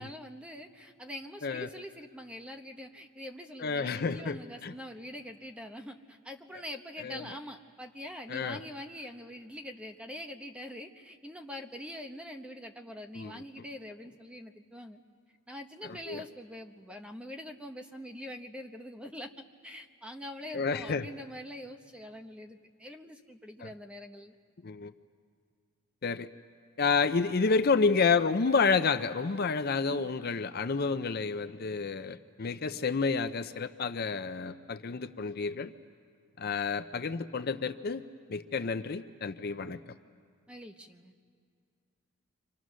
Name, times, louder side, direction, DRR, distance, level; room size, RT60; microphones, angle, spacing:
voice 1, 0.0-15.0 15.5-19.3 19.6-24.3 40.5-41.1, left 1 dB, 5° right, 4 dB, 0.9 m, -44 dB
voice 2, 3.6-4.7 7.0-7.2 8.3-8.6 13.1-13.3 15.9-16.2 20.5-21.1 23.6-23.7 24.6-24.9 26.0-26.3 26.8-35.7 36.4-38.0 38.3-39.8, left 4 dB, 45° left, 10 dB, 0.5 m, -29 dB
29.5 x 25.5 x 6.3 m, 2.2 s
head